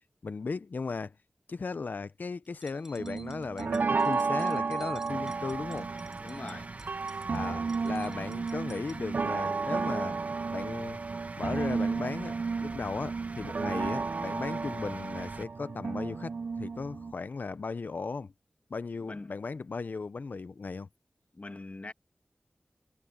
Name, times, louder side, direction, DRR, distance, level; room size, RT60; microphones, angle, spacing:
voice 1, 0.2-1.2 1.5-5.9 7.3-10.2 10.5-11.0 11.4-18.3 18.7-20.9, left 4 dB, 80° left, 0.6 m, -36 dB
sound 1, 2.5-9.0, right 1 dB, 15° right, 6.4 m, -55 dB
sound 2, 3.0-17.1, right 4 dB, 75° right, 0.3 m, -33 dB
sound 3, 5.1-15.4, right 3 dB, 55° right, 1.2 m, -44 dB
voice 2, 6.2-6.7 19.0-19.3 21.3-21.9, left 2 dB, 50° left, 1.9 m, -42 dB
wide cardioid pair, 65°, 3 cm